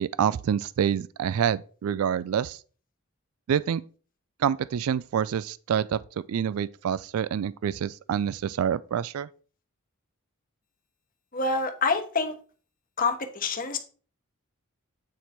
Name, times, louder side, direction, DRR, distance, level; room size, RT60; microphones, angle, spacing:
voice 1, 0.0-2.6 3.5-3.8 4.4-6.0 6.3-9.3, right 8 dB, 75° right, 0.3 m, -27 dB
voice 2, 11.3-12.3 13.0-13.8, left 4 dB, 40° left, 1.1 m, -26 dB
8.5 x 4.5 x 4.2 m
head